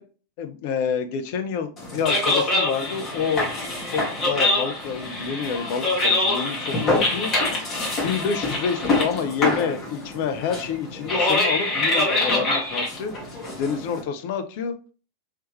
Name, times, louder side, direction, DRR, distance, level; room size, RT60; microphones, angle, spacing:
voice 1, 0.4-3.5 3.9-7.3 8.0-13.1 13.5-14.7, left 6 dB, 50° left, 8 dB, 0.5 m, -28 dB
sound 1, 1.8-14.0, left 2 dB, 30° left, 1.4 m, -25 dB
3.3 x 3.0 x 3.0 m, 0.37 s
figure-of-eight pair, 90°, 0 cm